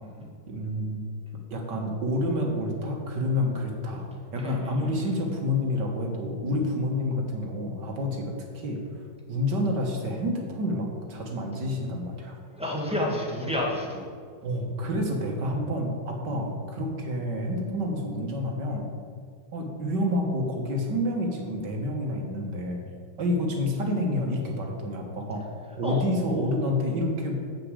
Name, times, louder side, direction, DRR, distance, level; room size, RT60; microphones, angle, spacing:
voice 1, 0.5-1.1 1.5-4.1 4.3-9.0 9.3-12.4 14.4-18.9 19.5-22.8 23.2-25.4 25.8-27.3, left 1 dB, 60° right, 1 dB, 1.8 m, -28 dB
voice 2, 4.4-5.1 12.6-14.1 25.8-26.1, left 1 dB, 5° right, -3 dB, 1.5 m, -30 dB
7.3 x 6.7 x 8.0 m, 2.1 s
omnidirectional pair, 2.2 m